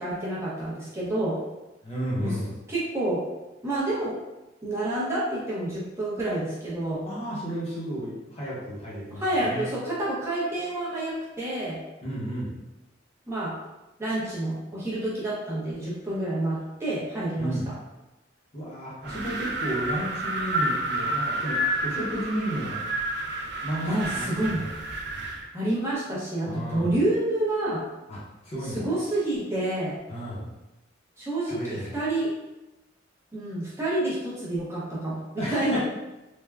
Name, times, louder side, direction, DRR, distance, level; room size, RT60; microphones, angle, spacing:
voice 1, 0.0-1.4 2.2-2.4 2.7-3.2 3.6-4.2 4.6-7.1 9.1-11.8 13.3-13.6 14.0-17.8 23.8-24.7 25.5-27.9 28.6-30.0 31.2-32.3 33.3-35.8, right 1 dB, 15° right, -8 dB, 0.6 m, -28 dB
voice 2, 1.8-2.5 7.1-9.7 12.0-12.6 17.4-17.7 18.5-22.8 23.6-24.7 26.5-26.9 28.1-28.8 30.1-30.5 31.5-32.0 35.4-35.8, equal, 30° left, -6 dB, 0.7 m, -33 dB
Wind, 19.0-25.5, right 1 dB, 60° right, 0.4 m, -30 dB
3.3 x 2.1 x 2.3 m, 1.0 s
head